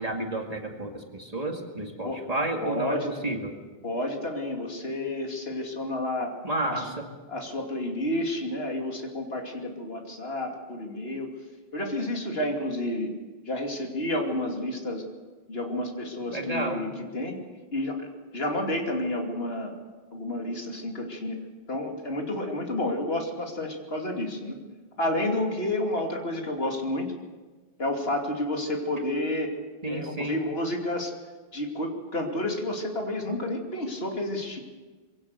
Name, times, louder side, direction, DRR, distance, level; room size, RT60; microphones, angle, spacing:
voice 1, 0.0-3.5 6.4-7.1 16.3-16.8 29.8-30.4, right 1 dB, 35° right, 2 dB, 2.3 m, -31 dB
voice 2, 2.6-3.1 3.8-6.3 6.7-6.9 7.3-11.3 11.7-13.1 13.4-15.0 15.5-16.9 17.1-17.4 17.7-18.1 18.3-19.7 20.1-21.4 21.7-24.6 25.0-27.1 27.8-29.5 29.9-31.1 31.5-34.6, left 1 dB, 70° left, 1 dB, 3.0 m, -30 dB
22.5 x 17.0 x 6.9 m, 1.3 s
omnidirectional pair, 1.1 m